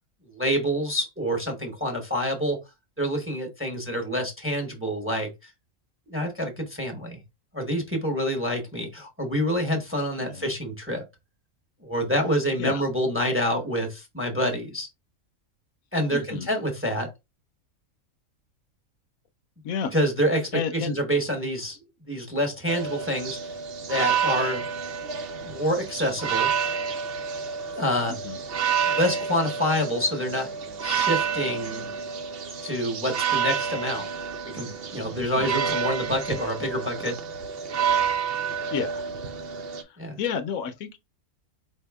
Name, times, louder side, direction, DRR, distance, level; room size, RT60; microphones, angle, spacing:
voice 1, 0.3-2.6 3.0-5.5 6.1-7.2 7.5-11.0 11.8-14.9 15.9-17.1 19.9-21.8 22.1-23.5 23.9-24.7 25.4-26.5 27.7-28.1 28.9-30.5 30.8-31.8 32.6-34.1 34.4-37.2 40.0-40.2, equal, 10° right, 0.9 m, -27 dB
voice 2, 16.1-16.5 19.6-19.9 20.5-21.0 28.1-28.4 35.1-35.5 38.7-38.9 39.8-41.0, left 7 dB, 80° left, 1.1 m, -31 dB
sound 1, 22.7-39.8, right 7 dB, 55° right, 0.7 m, -29 dB
4.6 x 2.8 x 3.4 m
omnidirectional pair, 1.5 m